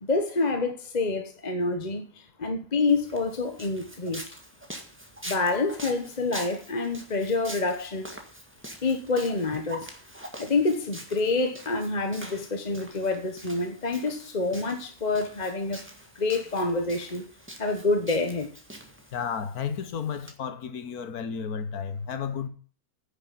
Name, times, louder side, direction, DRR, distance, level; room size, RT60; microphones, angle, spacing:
voice 1, 0.0-4.2 5.3-8.1 8.8-9.8 10.4-15.8 16.1-17.3 17.6-18.5, left 3 dB, 30° left, 1.1 m, -27 dB
Walk footsteps, 2.9-20.3, right 1 dB, 10° right, 1.6 m, -45 dB
voice 2, 19.1-22.5, left 7 dB, 75° left, 1.5 m, -32 dB
10.0 x 6.9 x 9.1 m
omnidirectional pair, 1.6 m